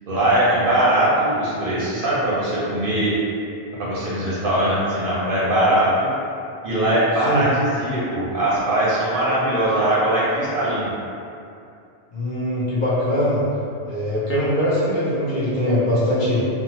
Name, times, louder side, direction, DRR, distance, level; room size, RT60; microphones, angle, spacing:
voice 1, 0.1-3.1 3.8-6.1 6.6-10.9, right 1 dB, 60° right, -8 dB, 0.7 m, -20 dB
voice 2, 12.1-13.4 13.9-16.5, left 1 dB, 55° left, -10 dB, 0.7 m, -21 dB
2.7 x 2.0 x 2.8 m, 2.5 s
omnidirectional pair, 1.2 m